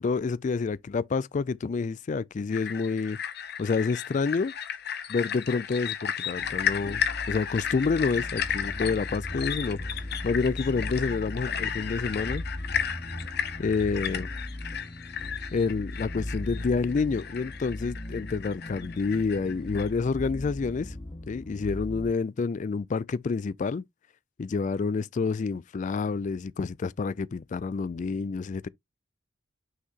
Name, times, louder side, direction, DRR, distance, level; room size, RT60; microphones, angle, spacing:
voice 1, 0.0-3.2 3.6-4.5 5.1-9.9 10.2-12.4 13.6-14.3 15.5-20.9 21.3-23.8 24.4-28.7, left 4 dB, 40° left, 0.3 m, -28 dB
sound 1, 2.5-19.9, left 8 dB, 55° left, 0.9 m, -34 dB
sound 2, 6.4-22.1, left 1 dB, 25° left, 0.8 m, -38 dB
6.4 x 5.6 x 2.9 m
head